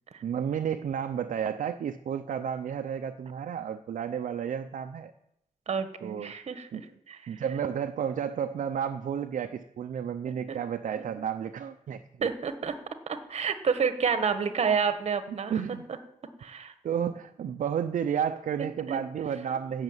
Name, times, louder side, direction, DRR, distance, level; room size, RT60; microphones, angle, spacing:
voice 1, 0.2-5.1 6.0-6.3 6.7-6.9 7.3-12.3 15.5-15.9 16.8-19.8, right 8 dB, 65° right, 6 dB, 0.6 m, -32 dB
voice 2, 5.7-6.7 7.1-7.2 10.5-10.6 12.2-12.8 13.1-15.5 16.4-16.7 18.9-19.0, right 6 dB, 50° right, 10 dB, 1.3 m, -29 dB
16.0 x 6.6 x 8.1 m, 0.78 s
wide cardioid pair, 130°, 14 cm